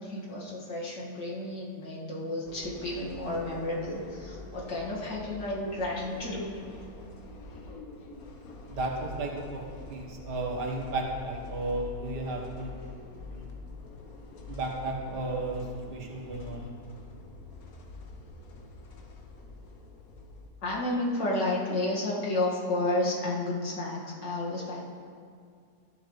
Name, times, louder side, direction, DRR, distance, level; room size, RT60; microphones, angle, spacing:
voice 1, 0.0-6.5 20.6-24.9, left 2 dB, 75° left, -5 dB, 2.7 m, -31 dB
sound 1, 2.4-20.5, left 3 dB, 55° left, 1.4 m, -45 dB
voice 2, 8.7-9.6 9.9-12.7 13.3-13.5 14.5-16.7, right 2 dB, 70° right, 0 dB, 2.0 m, -34 dB
14.0 x 10.5 x 3.3 m, 2.2 s
omnidirectional pair, 1.9 m